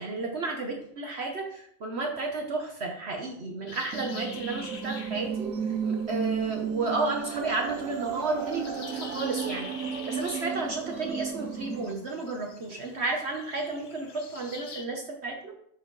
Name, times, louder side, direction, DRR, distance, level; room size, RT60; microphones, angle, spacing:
voice 1, 0.0-9.7 10.1-15.5, right 3 dB, 55° right, 1 dB, 1.3 m, -32 dB
sound 1, 3.7-14.8, left 5 dB, 50° left, 0.9 m, -46 dB
sound 2, 3.9-11.9, right 7 dB, 85° right, 1.1 m, -33 dB
12.0 x 4.7 x 4.0 m, 0.71 s
omnidirectional pair, 1.4 m